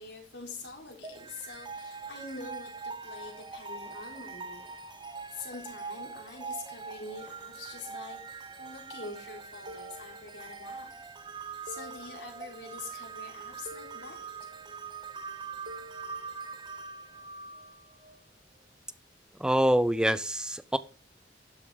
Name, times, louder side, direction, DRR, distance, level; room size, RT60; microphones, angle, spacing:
voice 1, 0.0-4.7 5.3-10.9 11.6-14.6, left 3 dB, 80° left, 4.2 m, -45 dB
sound 1, 1.0-18.2, right 4 dB, 25° right, 1.0 m, -43 dB
sound 2, 9.7-10.8 11.7-12.8 13.7-14.8 15.7-16.8, equal, 55° right, 1.6 m, -50 dB
voice 2, 19.4-20.8, equal, 5° right, 0.5 m, -25 dB
12.0 x 6.9 x 5.1 m
head